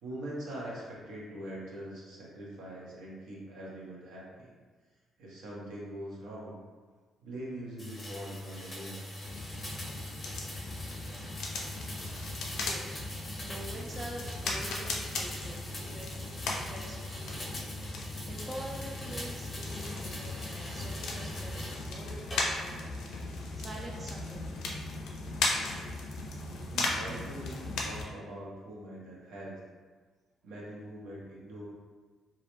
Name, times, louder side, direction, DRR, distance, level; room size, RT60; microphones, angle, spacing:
voice 1, 0.0-4.5 5.2-6.6 7.2-9.1 26.7-29.6 30.4-31.6, right 1 dB, 90° right, -5 dB, 0.7 m, -43 dB
sound 1, 7.8-21.8 22.3-22.8, left 1 dB, 25° left, 0.7 m, -42 dB
sound 2, 9.2-28.0, left 2 dB, 80° left, 0.4 m, -37 dB
voice 2, 12.6-24.6, right 1 dB, 30° right, -1 dB, 0.3 m, -46 dB
2.4 x 2.1 x 2.9 m, 1.4 s
cardioid pair, 90°, 0 cm